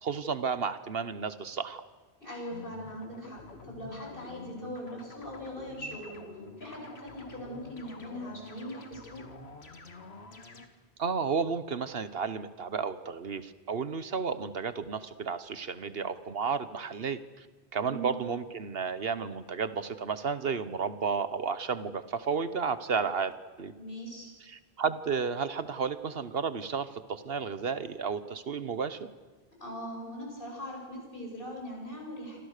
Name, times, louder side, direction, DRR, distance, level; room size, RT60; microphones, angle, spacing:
voice 1, 0.0-1.8 11.0-17.5 17.7-23.3 23.6-23.7 24.5-29.1, right 5 dB, 70° right, 13 dB, 1.3 m, -32 dB
voice 2, 2.2-6.2 6.6-9.2 17.8-18.2 23.7-24.3 29.6-32.4, equal, 60° left, 0 dB, 7.7 m, -41 dB
sound 1, 2.5-10.7, left 3 dB, 85° left, 2.2 m, -48 dB
28.5 x 25.5 x 6.7 m, 1.3 s
omnidirectional pair, 1.0 m